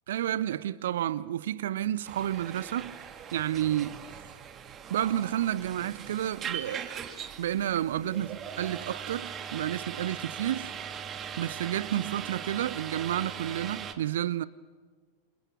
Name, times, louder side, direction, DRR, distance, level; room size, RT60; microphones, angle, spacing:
voice 1, 0.1-3.0 3.3-4.0 4.9-6.9 7.4-10.7 11.4-14.5, right 11 dB, 60° right, 0.7 m, -30 dB
sound 1, 2.0-13.9, right 8 dB, 25° right, 2.3 m, -40 dB
29.0 x 26.5 x 6.1 m
figure-of-eight pair, 90°, 0 cm